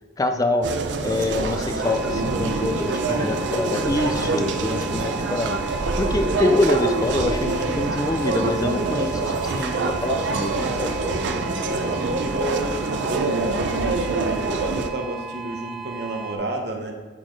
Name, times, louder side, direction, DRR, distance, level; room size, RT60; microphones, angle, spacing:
voice 1, 0.2-0.7 1.0-5.6 6.0-11.1, left 2 dB, 20° left, 7 dB, 0.4 m, -25 dB
sound 1, 0.6-14.9, right 3 dB, 85° right, 0.5 m, -25 dB
sound 2, 1.8-16.4, right 5 dB, ahead, 1.0 m, -36 dB
voice 2, 2.1-3.2 5.0-5.1 8.5-9.0 11.4-16.9, right 2 dB, 65° right, 2 dB, 0.9 m, -31 dB
sound 3, 6.1-10.0 10.4-13.8, left 1 dB, 20° right, 1.5 m, -42 dB
9.8 x 4.2 x 3.2 m, 1.3 s
head